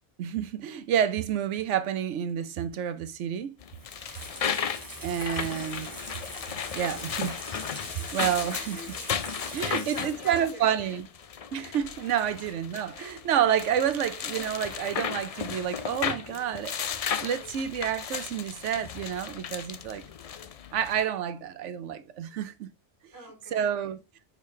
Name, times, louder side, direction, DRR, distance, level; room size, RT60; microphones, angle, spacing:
voice 1, 0.2-3.5 5.0-5.9 6.8-7.4 8.1-8.8 9.5-11.1 11.5-16.7 17.0-20.0 20.7-22.7 23.5-24.0, right 9 dB, 90° right, 1.0 m, -29 dB
sound 1, 3.6-21.0, left 7 dB, 60° left, 0.4 m, -35 dB
Water tap faucet / Sink (filling or washing), 3.7-10.5 10.8-10.9, equal, 15° right, 2.5 m, -43 dB
voice 2, 8.4-10.9 23.1-24.0, equal, 15° left, 2.5 m, -47 dB
6.5 x 5.1 x 3.1 m
omnidirectional pair, 1.2 m